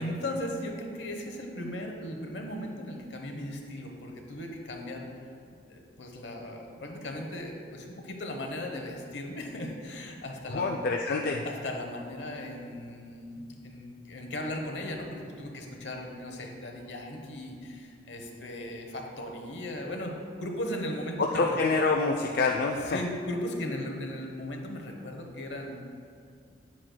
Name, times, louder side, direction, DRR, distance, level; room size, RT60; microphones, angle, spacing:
voice 1, 0.0-5.1 5.7-10.7 11.4-21.5 22.9-25.8, left 1 dB, 75° left, 2 dB, 0.9 m, -37 dB
voice 2, 10.5-11.5 21.2-23.0, left 3 dB, 55° left, 1 dB, 0.4 m, -26 dB
9.1 x 7.4 x 2.2 m, 2.3 s
head